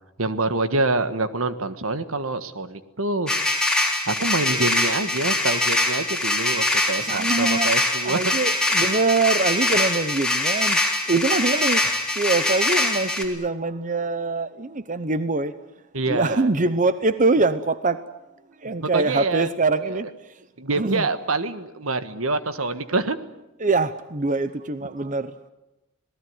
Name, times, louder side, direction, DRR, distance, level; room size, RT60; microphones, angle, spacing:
voice 1, 0.2-3.3 4.1-8.2 15.9-16.5 18.8-19.5 20.6-23.2, right 3 dB, 75° right, 1.5 m, -26 dB
sound 1, 3.3-13.2, left 2 dB, 5° left, 3.6 m, -23 dB
voice 2, 6.7-7.7 8.0-10.8 11.1-11.8 12.1-15.5 16.1-18.0 18.6-20.4 20.7-21.1 23.6-25.5, right 3 dB, 35° right, 0.8 m, -24 dB
26.5 x 18.5 x 9.6 m
head